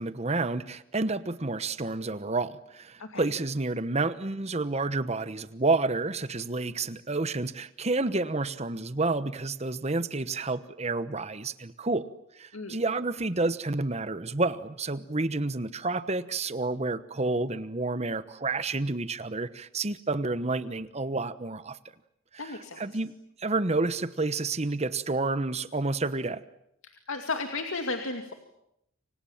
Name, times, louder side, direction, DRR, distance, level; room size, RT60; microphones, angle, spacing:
voice 1, 0.0-12.0 12.3-21.8 22.4-26.4, right 3 dB, 30° right, 14 dB, 1.1 m, -30 dB
voice 2, 3.0-3.3 12.5-12.8 22.4-22.8 26.8-28.3, left 3 dB, 80° left, 5 dB, 2.4 m, -34 dB
29.0 x 25.5 x 7.3 m, 0.78 s
head